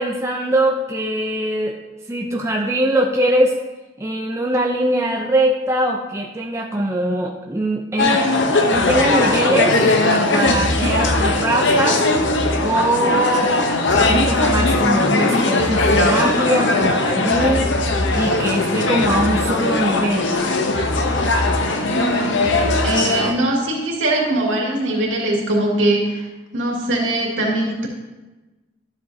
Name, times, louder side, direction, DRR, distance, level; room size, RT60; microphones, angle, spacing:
voice 1, 0.0-1.8 2.1-3.5 4.0-8.2 8.7-12.0 12.6-13.5 13.9-17.7 18.1-20.4, right 1 dB, 15° right, 0 dB, 0.5 m, -21 dB
sound 1, 8.0-23.3, left 2 dB, 65° left, 0.8 m, -19 dB
voice 2, 21.9-22.5 22.8-26.3 26.5-27.9, right 1 dB, 75° right, -2 dB, 2.1 m, -21 dB
12.0 x 7.7 x 2.7 m, 1.1 s
head